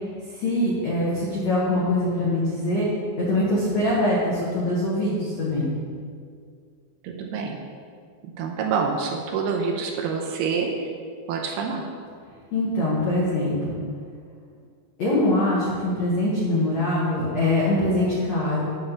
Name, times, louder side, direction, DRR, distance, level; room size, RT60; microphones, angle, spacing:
voice 1, 0.3-2.9 3.2-5.6 12.5-13.8 15.0-18.7, left 1 dB, 65° left, -7 dB, 1.7 m, -23 dB
voice 2, 7.0-7.6 8.4-10.7 11.3-11.8, right 5 dB, 80° right, 1 dB, 2.4 m, -26 dB
9.0 x 4.4 x 7.0 m, 2.2 s
omnidirectional pair, 5.0 m